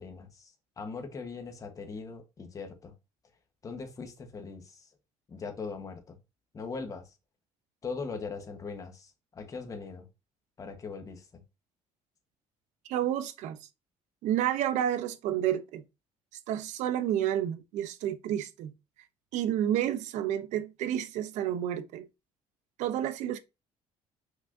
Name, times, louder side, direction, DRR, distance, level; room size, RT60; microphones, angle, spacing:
voice 1, 0.0-2.9 3.6-4.9 5.3-6.2 6.5-7.1 7.8-10.1 10.6-11.4, left 4 dB, 25° left, 1.4 m, -40 dB
voice 2, 12.9-13.6 14.2-15.8 16.5-18.7 19.3-22.1 22.8-23.4, right 11 dB, 75° right, 0.8 m, -30 dB
5.9 x 5.8 x 2.8 m
cardioid pair, 140°, 12 cm